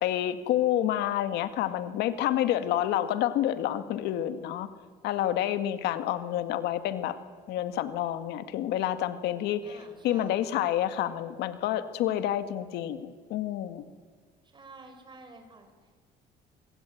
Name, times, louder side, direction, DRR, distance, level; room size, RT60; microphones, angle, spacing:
voice 1, 0.0-4.7 5.0-7.2 7.5-13.8, left 12 dB, 85° left, 10 dB, 2.0 m, -29 dB
voice 2, 9.6-10.4 14.5-15.7, right 3 dB, 25° right, 6 dB, 6.2 m, -50 dB
24.5 x 24.0 x 9.3 m, 1.5 s
cardioid pair, 110°, 17 cm